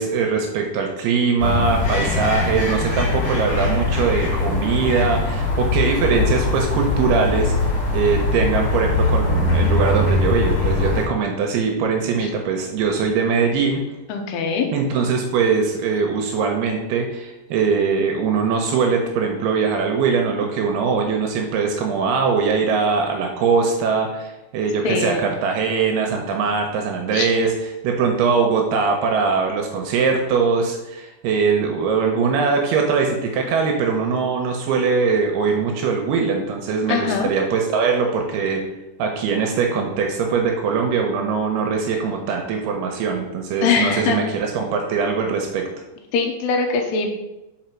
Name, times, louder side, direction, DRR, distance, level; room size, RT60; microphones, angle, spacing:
voice 1, 0.0-13.8 14.7-27.5 27.8-38.6 39.0-45.7, right 5 dB, 80° right, 3 dB, 2.4 m, -21 dB
sound 1, 1.4-11.1, left 3 dB, 45° left, 2.5 m, -21 dB
voice 2, 14.1-14.7 24.8-25.3 27.1-27.3 36.9-37.3 43.6-44.2 46.1-47.1, left 5 dB, 80° left, 3 dB, 2.6 m, -22 dB
5.6 x 5.0 x 4.4 m, 0.97 s
omnidirectional pair, 5.0 m